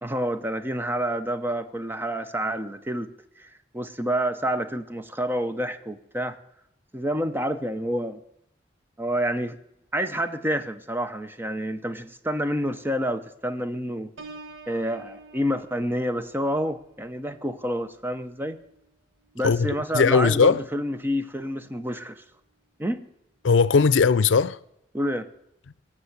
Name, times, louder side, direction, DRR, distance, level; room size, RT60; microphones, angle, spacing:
voice 1, 0.0-6.4 6.9-8.2 9.0-9.6 9.9-14.1 14.7-18.6 19.3-22.2 22.8-23.1 24.9-25.3, equal, 10° right, 0.7 m, -28 dB
Piano, 14.2-19.8 20.3-20.6, right 3 dB, 85° right, 1.4 m, -49 dB
voice 2, 19.9-20.7 23.4-24.6, left 5 dB, 85° left, 0.5 m, -18 dB
18.5 x 7.4 x 8.1 m
head